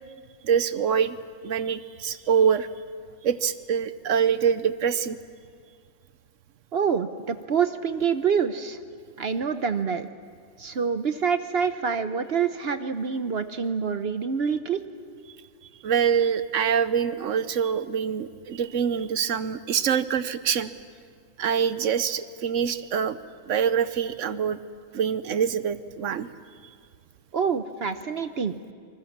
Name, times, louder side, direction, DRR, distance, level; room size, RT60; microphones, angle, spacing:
voice 1, 0.4-1.2 1.4-2.7 3.2-5.2 15.8-20.7 21.4-23.2 23.5-24.6 24.9-26.3, right 7 dB, 75° right, 13 dB, 1.2 m, -25 dB
voice 2, 6.7-8.8 9.2-10.1 10.6-14.8 27.3-28.6, right 6 dB, 55° right, 10 dB, 1.0 m, -26 dB
27.5 x 20.0 x 7.2 m, 2.2 s
omnidirectional pair, 1.3 m